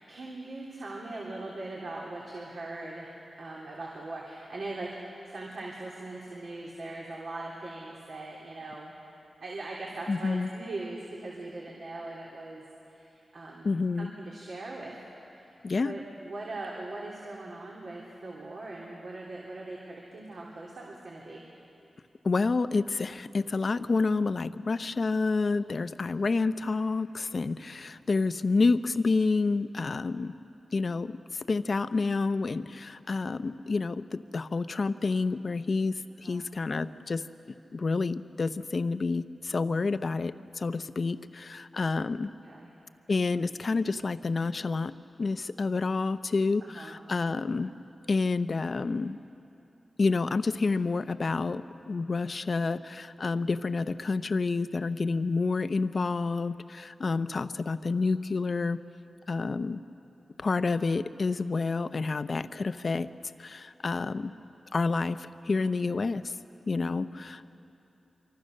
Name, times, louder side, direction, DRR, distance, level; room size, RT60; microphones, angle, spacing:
voice 1, 0.1-8.9 9.4-13.7 14.0-15.0 15.3-15.6 15.8-21.4 36.2-36.4 42.4-42.7 46.6-47.0, right 2 dB, 70° right, -4 dB, 3.4 m, -40 dB
voice 2, 10.1-10.5 13.6-14.1 15.6-15.9 22.2-30.3 30.7-37.2 37.7-42.3 43.1-44.9 45.2-47.7 48.1-49.2 50.0-58.8 59.3-59.8 60.4-63.1 63.4-64.3 64.7-66.3 66.7-67.5, left 3 dB, 55° left, 12 dB, 0.7 m, -29 dB
25.5 x 24.5 x 6.6 m, 2.9 s
wide cardioid pair, 75°, 0 cm